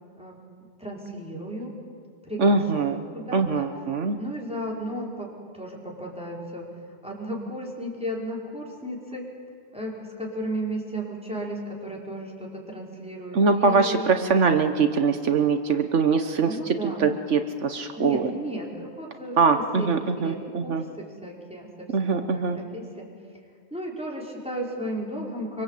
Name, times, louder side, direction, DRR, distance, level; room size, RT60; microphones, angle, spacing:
voice 1, 0.8-1.8 2.3-3.7 4.2-6.8 7.0-9.3 9.7-14.1 16.4-17.0 18.0-23.1 23.7-25.6, equal, 5° right, -3 dB, 5.3 m, -34 dB
voice 2, 2.4-3.0 3.3-4.2 13.3-18.3 19.4-20.8 21.9-22.6, right 4 dB, 75° right, 7 dB, 1.4 m, -23 dB
25.5 x 25.0 x 8.4 m, 2.1 s
omnidirectional pair, 1.2 m